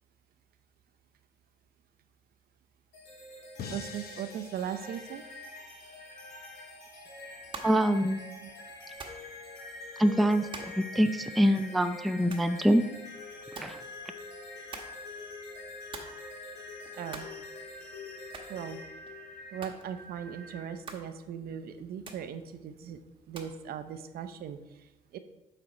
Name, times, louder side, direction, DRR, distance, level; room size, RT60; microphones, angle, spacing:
sound 1, 2.9-20.6, left 2 dB, 85° left, 2.9 m, -45 dB
sound 2, 3.6-6.7, left 6 dB, 65° left, 0.9 m, -47 dB
voice 1, 3.7-5.2 8.4-8.5 16.9-17.3 18.5-18.8 19.5-23.0 23.3-25.2, right 8 dB, 65° right, 10 dB, 0.6 m, -39 dB
sound 3, 7.3-23.6, right 4 dB, 30° right, 1.1 m, -50 dB
voice 2, 7.6-8.2 10.0-12.8 13.6-13.8, equal, ahead, 8 dB, 0.4 m, -25 dB
7.7 x 4.3 x 5.3 m, 1.0 s
cardioid pair, 110°, 17 cm